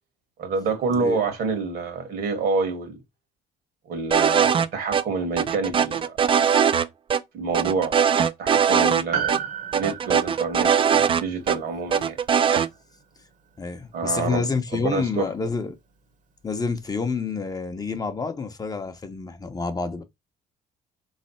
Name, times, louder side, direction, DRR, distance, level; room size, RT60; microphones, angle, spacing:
voice 1, 0.4-3.0 3.9-6.2 7.3-8.0 8.4-9.4 9.7-12.2 13.9-15.3, right 4 dB, 65° right, 1.5 m, -27 dB
sound 1, 4.1-4.7 4.9-5.0 5.4-6.9 7.1-7.2 7.5-9.0 9.3-9.4 9.7-11.6 11.9-12.7, right 7 dB, 30° right, 0.4 m, -20 dB
Piano, 9.1-13.7 14.0-14.1, right 8 dB, 50° right, 1.1 m, -34 dB
voice 2, 13.6-15.8 16.4-20.0, left 4 dB, 20° left, 0.7 m, -28 dB
3.7 x 3.2 x 4.2 m
cardioid pair, 110°, 17 cm